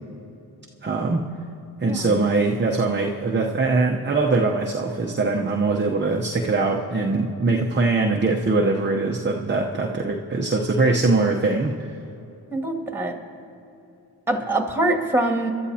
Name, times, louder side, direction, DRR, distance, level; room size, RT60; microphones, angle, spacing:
voice 1, 0.8-1.2 1.8-11.7, right 3 dB, 25° right, 0 dB, 0.9 m, -22 dB
voice 2, 12.5-13.2 14.3-15.5, right 2 dB, 5° right, 3 dB, 2.2 m, -24 dB
23.5 x 12.5 x 2.8 m, 2.9 s
cardioid pair, 60°, 39 cm